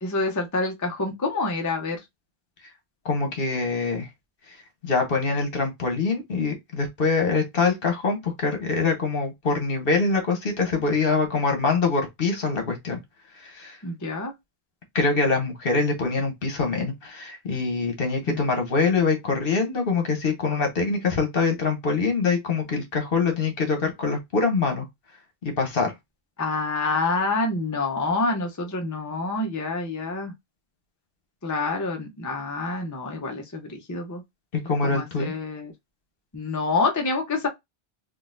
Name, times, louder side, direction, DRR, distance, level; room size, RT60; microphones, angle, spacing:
voice 1, 0.0-2.0 13.8-14.3 18.3-18.4 26.4-30.3 31.4-34.2 34.8-35.7 36.3-37.5, left 3 dB, 20° left, 0.6 m, -27 dB
voice 2, 3.0-4.1 4.5-4.6 4.8-13.0 13.4-13.8 14.9-24.8 25.4-25.9 34.5-35.3, left 4 dB, 60° left, 1.3 m, -24 dB
3.8 x 2.5 x 2.5 m
omnidirectional pair, 1.1 m